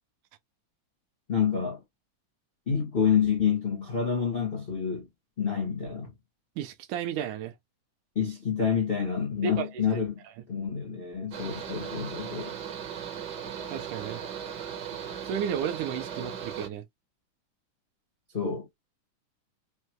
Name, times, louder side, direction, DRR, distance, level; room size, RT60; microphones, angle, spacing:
voice 1, 1.3-1.8 2.7-5.1 5.4-6.1 8.1-10.2 10.5-12.6 18.3-18.7, left 7 dB, 65° left, 0.5 m, -28 dB
voice 2, 6.6-7.5 9.4-9.9 13.7-14.2 15.2-16.8, right 8 dB, 80° right, 1.9 m, -33 dB
Mechanical fan, 11.3-16.7, right 8 dB, 60° right, 1.1 m, -37 dB
5.5 x 2.2 x 3.0 m
omnidirectional pair, 3.7 m